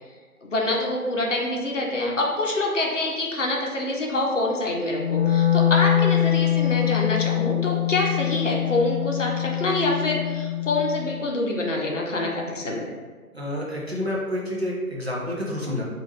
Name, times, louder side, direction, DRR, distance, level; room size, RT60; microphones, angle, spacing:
voice 1, 0.4-12.9, left 2 dB, 55° left, -1 dB, 0.6 m, -26 dB
Wind instrument woodwind instrument, 4.9-11.1, left 10 dB, 15° right, 1.2 m, -23 dB
voice 2, 13.3-15.8, left 1 dB, 45° right, -4 dB, 0.5 m, -29 dB
2.8 x 2.4 x 2.8 m, 1.5 s
figure-of-eight pair, 160°, 45 cm